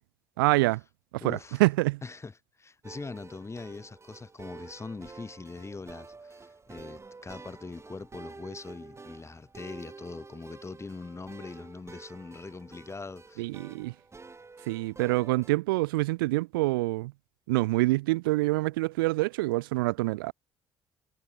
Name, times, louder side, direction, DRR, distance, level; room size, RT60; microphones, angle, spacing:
voice 1, 0.4-0.8 1.2-2.0 13.4-13.9 14.6-17.1 17.5-20.3, right 21 dB, 80° right, 0.5 m, -26 dB
voice 2, 1.2-1.6 2.0-13.5, left 3 dB, 25° left, 3.0 m, -42 dB
sound 1, 2.8-15.5, right 3 dB, 25° right, 3.1 m, -49 dB
hypercardioid pair, 55°, 12 cm